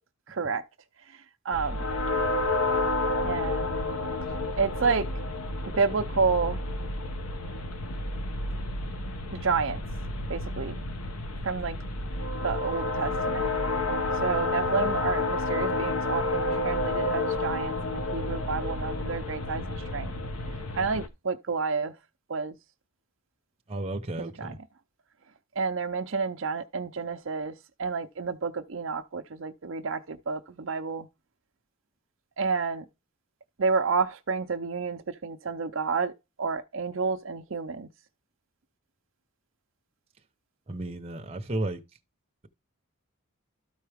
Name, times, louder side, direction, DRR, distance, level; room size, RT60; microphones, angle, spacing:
sound 1, 1.5-21.1, left 2 dB, 80° left, 1.0 m, -30 dB
voice 1, 1.5-1.8 3.2-3.6 4.6-5.0 5.8-6.6 9.4-9.8 10.3-10.8 11.4-11.8 12.4-13.5 14.2-19.6 19.9-20.1 20.8-21.9 22.3-22.5 24.2-24.5 25.6-27.5 27.8-31.1 32.4-32.8 33.6-36.1 36.4-37.9, right 4 dB, 60° right, 0.6 m, -29 dB
voice 2, 23.7-24.6 40.7-41.8, right 2 dB, 25° right, 0.9 m, -33 dB
13.0 x 4.6 x 3.5 m
head